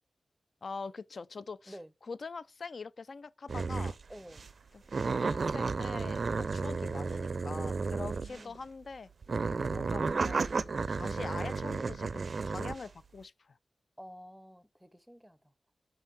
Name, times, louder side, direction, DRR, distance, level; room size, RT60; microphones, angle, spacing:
voice 1, 0.6-1.8 2.0-4.0 4.7-9.1 9.6-13.6, left 4 dB, 55° left, 0.4 m, -44 dB
sound 1, 3.5-4.0 4.3-4.5 4.9-8.6 9.2-12.8, right 4 dB, 55° right, 0.4 m, -33 dB
voice 2, 4.1-4.5 8.0-8.6 14.0-15.5, equal, 5° right, 0.7 m, -50 dB
5.7 x 5.4 x 5.3 m
wide cardioid pair, 120°, 0 cm